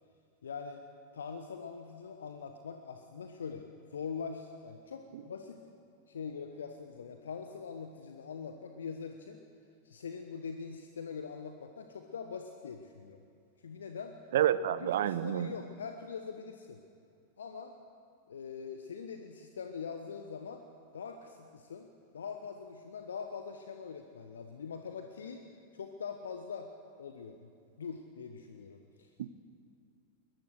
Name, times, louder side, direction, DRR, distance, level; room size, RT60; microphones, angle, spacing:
voice 1, 0.4-0.8 1.1-5.6 6.1-9.4 9.8-13.2 13.6-14.1 14.8-16.8 17.4-17.7 18.3-20.6 20.9-21.9 22.1-25.4 25.7-26.7 27.0-27.5 27.8-29.3, left 6 dB, 65° left, 6 dB, 1.1 m, -43 dB
voice 2, 14.3-15.5 29.2-29.3, right 11 dB, 60° right, 16 dB, 0.8 m, -29 dB
22.0 x 20.5 x 6.5 m, 2.5 s
figure-of-eight pair, 90°, 0 cm